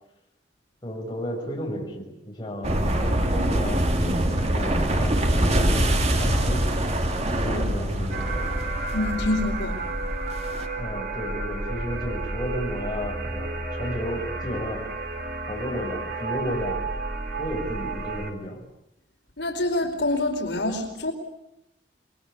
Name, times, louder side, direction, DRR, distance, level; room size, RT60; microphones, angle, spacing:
voice 1, 0.8-7.0 7.4-8.6 10.8-14.9 15.5-16.8 17.4-18.6, equal, 25° left, -1 dB, 6.6 m, -33 dB
sound 1, 2.6-10.7, right 1 dB, 40° right, 2.7 m, -24 dB
sound 2, 8.1-18.3, right 2 dB, 55° right, 3.3 m, -31 dB
voice 2, 8.9-9.7 19.4-21.1, left 2 dB, 80° left, 3 dB, 4.8 m, -26 dB
27.5 x 22.5 x 8.5 m, 0.84 s
head